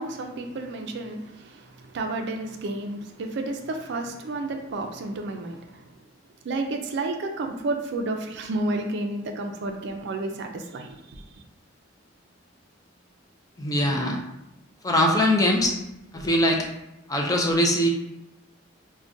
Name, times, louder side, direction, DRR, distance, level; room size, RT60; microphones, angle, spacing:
voice 1, 0.0-5.9 6.4-11.2, right 2 dB, 60° right, 4 dB, 0.4 m, -31 dB
voice 2, 13.6-14.2 14.8-15.9 16.1-16.7 17.1-17.9, left 1 dB, 20° left, 1 dB, 0.5 m, -22 dB
4.7 x 2.2 x 2.5 m, 0.89 s
head